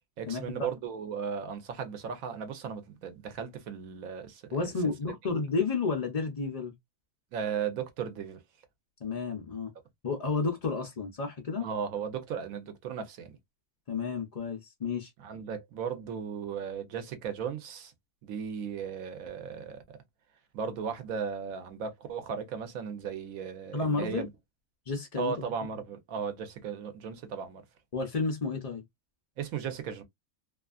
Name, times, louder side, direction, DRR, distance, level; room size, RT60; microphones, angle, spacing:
voice 1, 0.2-4.7 7.3-8.4 11.6-13.4 15.2-17.9 18.2-20.0 20.5-24.3 25.2-27.6 29.4-30.0, right 6 dB, 70° right, 1.1 m, -36 dB
voice 2, 4.5-6.7 9.0-9.7 10.0-11.7 13.9-15.1 23.7-24.3 24.9-25.4 27.9-28.8, left 4 dB, 65° left, 0.3 m, -31 dB
2.8 x 2.4 x 2.3 m
omnidirectional pair, 1.6 m